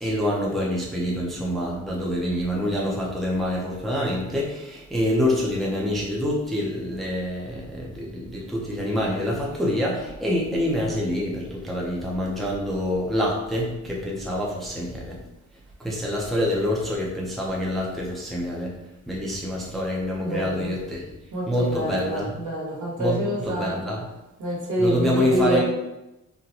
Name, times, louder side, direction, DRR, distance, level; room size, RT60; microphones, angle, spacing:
voice 1, 0.0-15.2 15.8-18.7 19.1-21.0 21.5-22.4 23.0-24.1 24.8-25.6, left 1 dB, ahead, -4 dB, 0.5 m, -26 dB
voice 2, 20.2-20.7 21.3-23.8 24.4-25.6, equal, 70° right, -4 dB, 1.2 m, -26 dB
3.9 x 2.2 x 2.8 m, 0.96 s
wide cardioid pair, 120°, 31 cm